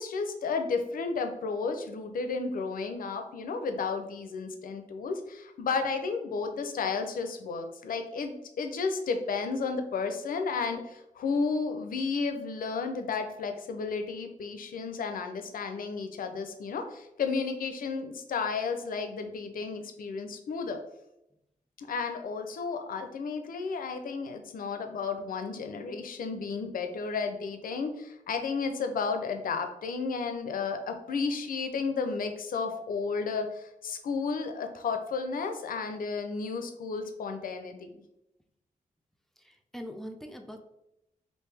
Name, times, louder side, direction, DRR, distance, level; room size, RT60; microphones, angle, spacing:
voice 1, 0.0-20.8 21.8-38.0, left 4 dB, 80° left, 6 dB, 0.5 m, -33 dB
voice 2, 39.4-40.6, equal, ahead, 3 dB, 0.5 m, -42 dB
3.4 x 2.6 x 3.2 m, 0.86 s
cardioid pair, 75°, 14 cm